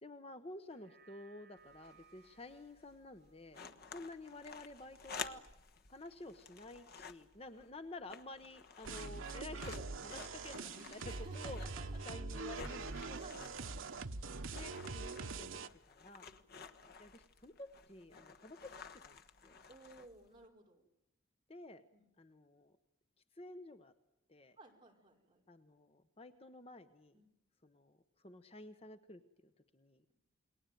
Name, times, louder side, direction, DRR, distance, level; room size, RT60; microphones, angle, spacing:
voice 1, 0.0-3.6 3.9-5.4 5.9-11.6 12.1-13.2 14.2-15.6 15.9-16.3 17.0-18.8 19.0-19.5 21.5-21.8 22.2-22.8 23.3-23.9 24.3-24.6 25.5-27.2 27.6-28.0 28.2-30.0, left 2 dB, 30° left, 9 dB, 1.0 m, -51 dB
sound 1, 0.6-5.2 5.6-5.7, right 7 dB, 50° right, 3.5 m, -67 dB
sound 2, 1.6-20.5, left 5 dB, 50° left, 1.3 m, -53 dB
sound 3, 8.8-15.7, right 3 dB, 80° right, 1.1 m, -44 dB
voice 2, 11.0-12.2 13.2-14.4 16.2-16.5 19.7-20.8 21.9-22.1 24.6-25.4 27.1-27.3, right 2 dB, 25° right, 0 dB, 4.9 m, -58 dB
29.0 x 21.0 x 9.2 m, 0.89 s
head